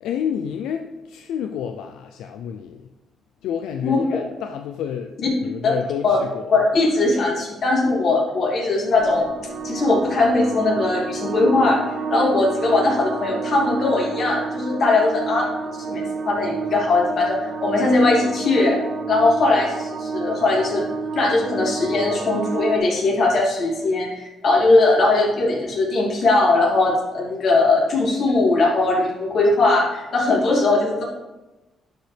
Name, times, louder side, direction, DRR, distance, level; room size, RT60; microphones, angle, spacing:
voice 1, 0.0-2.9 3.4-5.1 5.4-6.5, left 8 dB, 85° left, 6 dB, 0.4 m, -29 dB
voice 2, 6.5-9.3 9.6-11.8 12.1-15.5 15.7-18.8 19.1-20.8 21.1-31.0, left 2 dB, 55° left, -3 dB, 2.7 m, -19 dB
sound 1, 8.9-22.8, right 4 dB, 55° right, 1.5 m, -30 dB
11.5 x 5.2 x 3.4 m, 1.1 s
cardioid pair, 90°, 0 cm